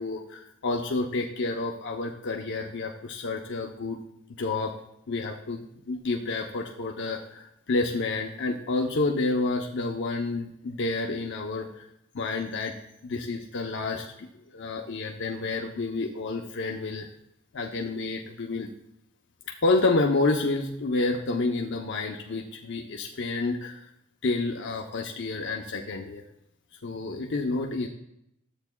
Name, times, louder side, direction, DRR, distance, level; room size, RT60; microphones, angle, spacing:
voice 1, 0.0-4.0 4.4-4.7 5.1-11.9 12.1-12.7 13.0-14.3 14.5-17.1 17.5-18.7 19.5-23.9 24.2-26.2 26.8-27.9, left 3 dB, 60° left, 1 dB, 0.7 m, -29 dB
13.0 x 8.0 x 2.2 m, 0.79 s
head